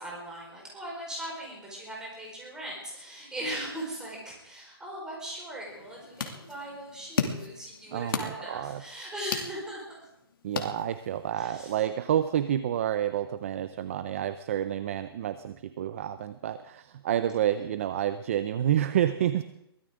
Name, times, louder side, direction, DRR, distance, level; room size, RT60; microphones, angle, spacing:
voice 1, 0.0-10.0 11.3-11.7, right 1 dB, 5° right, -3 dB, 4.7 m, -39 dB
sound 1, 5.7-11.3, left 6 dB, 60° left, 2.5 m, -36 dB
voice 2, 7.9-8.8 10.4-19.4, right 10 dB, 30° right, 12 dB, 0.6 m, -29 dB
23.0 x 16.5 x 3.8 m, 0.82 s
hypercardioid pair, 165°, 13 cm